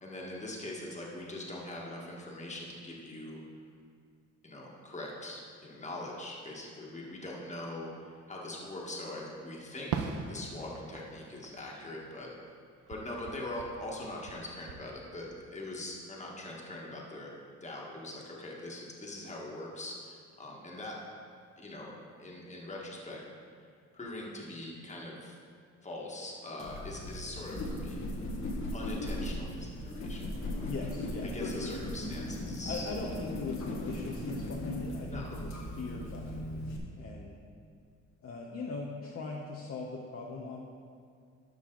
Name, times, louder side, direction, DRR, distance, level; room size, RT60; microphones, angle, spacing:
voice 1, 0.0-3.4 4.4-12.3 12.9-17.3 17.6-21.0 21.6-21.9 22.2-23.2 23.9-25.4 25.8-28.0 28.7-30.7 31.2-32.9 35.1-35.3, left 1 dB, 25° left, -3 dB, 1.7 m, -42 dB
Fireworks, 9.9-12.5 12.9-14.8, right 6 dB, 80° right, 0.7 m, -41 dB
sound 1, 26.6-36.8, left 1 dB, 65° left, 1.5 m, -38 dB
voice 2, 30.6-31.8 32.6-36.6 37.0-37.4 38.2-40.6, left 4 dB, 50° left, -2 dB, 0.9 m, -40 dB
12.5 x 5.5 x 3.9 m, 2.2 s
cardioid pair, 90°, 30 cm